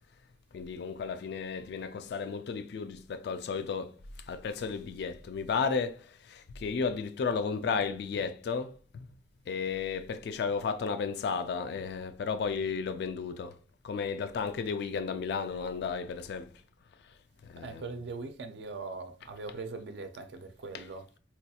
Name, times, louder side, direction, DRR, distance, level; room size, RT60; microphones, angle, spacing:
voice 1, 0.5-9.1 9.5-13.6 13.8-16.6 17.0-17.1 17.4-18.0 20.7-20.8, left 5 dB, 65° left, 0.3 m, -33 dB
voice 2, 17.6-21.1, right 3 dB, 75° right, 0.4 m, -41 dB
4.1 x 2.3 x 2.7 m
head